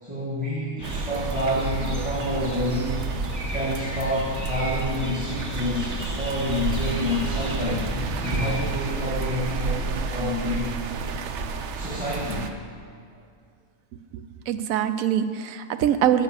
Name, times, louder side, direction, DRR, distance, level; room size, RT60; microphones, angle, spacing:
voice 1, 0.0-3.1 3.5-7.9 8.2-10.7 11.7-12.5, left 1 dB, 5° right, -7 dB, 1.7 m, -28 dB
sound 1, 0.8-8.7, left 1 dB, 15° left, 1.2 m, -35 dB
sound 2, 0.8-12.5, right 4 dB, 65° right, 0.9 m, -31 dB
voice 2, 14.1-16.2, right 10 dB, 85° right, 11 dB, 1.1 m, -24 dB
10.0 x 6.9 x 7.4 m, 2.3 s
omnidirectional pair, 1.4 m